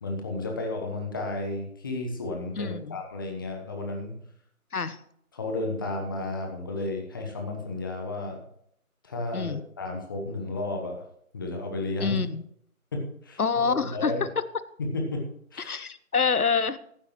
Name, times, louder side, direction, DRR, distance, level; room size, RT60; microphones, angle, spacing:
voice 1, 0.0-4.1 5.3-8.4 9.0-11.0 11.3-12.2 12.9-13.4 13.8-14.2 14.8-15.2 15.5-15.8, left 2 dB, 15° left, 2 dB, 1.1 m, -32 dB
voice 2, 2.6-3.0 4.7-5.0 9.3-9.6 12.0-12.4 13.4-14.1 15.6-16.8, left 5 dB, 80° left, 15 dB, 1.0 m, -26 dB
14.5 x 11.5 x 3.1 m, 0.68 s
figure-of-eight pair, 155°, 44 cm